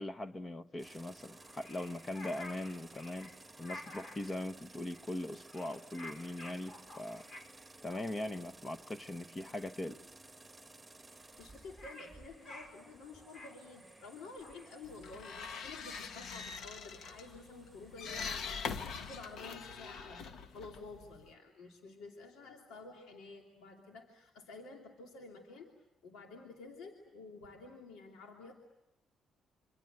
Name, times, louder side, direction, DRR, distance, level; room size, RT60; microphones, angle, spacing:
voice 1, 0.0-3.3 3.6-7.2 7.8-10.0, left 1 dB, 25° left, 1.1 m, -41 dB
sound 1, 0.8-19.4, right 2 dB, 10° right, 1.9 m, -57 dB
sound 2, 1.2-4.4 4.9-5.2 5.4-7.6 7.8-8.0 8.7-8.8 8.9-9.2 9.5-9.8 10.1-10.2 10.3-10.4 10.7-17.4, left 2 dB, 55° left, 5.9 m, -52 dB
voice 2, 11.0-25.7 26.0-28.5, left 3 dB, 85° left, 2.9 m, -51 dB
sound 3, 14.8-21.3, left 5 dB, 70° left, 1.5 m, -43 dB
27.5 x 25.5 x 8.0 m
cardioid pair, 90°, 0 cm